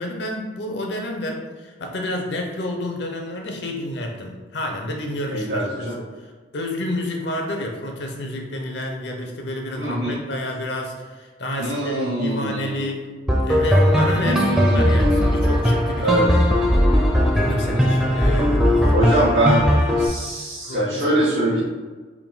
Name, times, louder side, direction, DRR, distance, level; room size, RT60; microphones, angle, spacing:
voice 1, 0.0-6.3 6.5-13.2 13.4-16.5 17.3-19.0 20.6-21.6, left 1 dB, 70° left, 1 dB, 0.6 m, -29 dB
voice 2, 5.3-6.0 9.7-10.2 11.6-12.8 14.2-15.4 16.0-16.3 17.5-17.9 18.9-21.6, right 1 dB, 90° right, -9 dB, 1.1 m, -23 dB
sound 1, 13.3-20.1, equal, 5° right, 0.4 m, -18 dB
3.5 x 2.6 x 3.9 m, 1.4 s
head